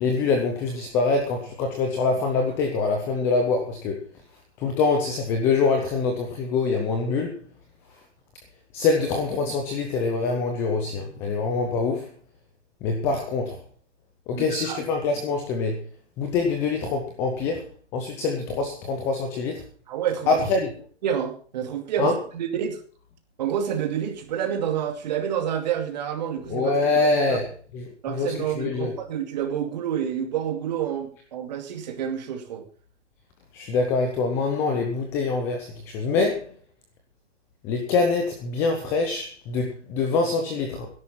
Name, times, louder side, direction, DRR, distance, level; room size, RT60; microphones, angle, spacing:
voice 1, 0.0-4.0 4.6-7.4 8.7-12.1 12.8-13.6 14.3-15.8 16.2-17.6 17.9-19.6 20.3-20.7 22.0-22.1 26.5-28.9 33.5-36.4 37.6-40.9, left 4 dB, 5° left, 0.5 m, -24 dB
voice 2, 14.3-14.8 19.9-20.5 21.0-22.8 23.4-26.9 27.3-27.4 28.0-32.6, right 9 dB, 35° right, 2.4 m, -28 dB
13.0 x 11.0 x 5.6 m
hypercardioid pair, 155°, 35 cm